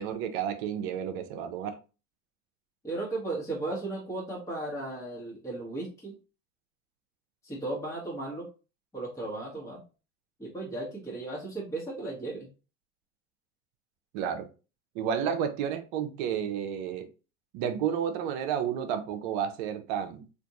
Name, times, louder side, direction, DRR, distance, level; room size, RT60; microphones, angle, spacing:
voice 1, 0.0-1.8 14.1-14.5 14.9-17.1 17.5-20.3, right 8 dB, 60° right, 9 dB, 0.7 m, -31 dB
voice 2, 2.8-6.2 7.4-8.5 8.9-9.8 10.4-12.5, right 2 dB, 10° left, -5 dB, 1.2 m, -35 dB
3.5 x 2.5 x 2.8 m, 0.33 s
hypercardioid pair, 95°, 37 cm